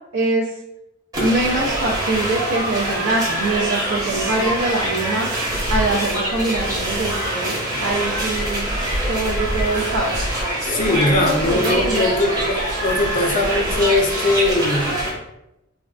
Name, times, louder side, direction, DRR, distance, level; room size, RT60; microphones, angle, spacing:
voice 1, 0.1-0.5 1.2-5.3 5.7-8.7 9.1-10.3 10.7-12.1, right 2 dB, 70° right, -5 dB, 0.5 m, -24 dB
sound 1, 1.1-15.1, right 1 dB, 20° right, 0.8 m, -24 dB
voice 2, 10.6-14.9, left 2 dB, 40° left, 3 dB, 0.5 m, -20 dB
3.4 x 2.2 x 2.3 m, 0.88 s
head